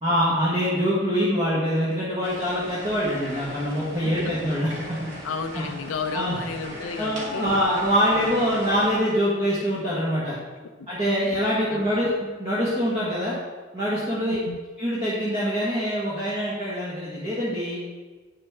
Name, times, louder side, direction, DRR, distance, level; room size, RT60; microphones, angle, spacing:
voice 1, 0.0-5.0 5.5-5.6 6.1-6.4 7.0-10.3 10.9-12.1 12.4-13.4 13.7-14.4 14.8-17.8, equal, 30° right, -8 dB, 1.5 m, -24 dB
sound 1, 2.2-9.0, right 1 dB, 65° right, 2.1 m, -39 dB
voice 2, 4.0-4.4 5.2-7.6 8.1-8.4 10.8-10.9 11.2-11.3 11.7-12.0 14.3-14.6, left 5 dB, 80° left, 6 dB, 0.5 m, -33 dB
8.9 x 6.4 x 3.6 m, 1.3 s
head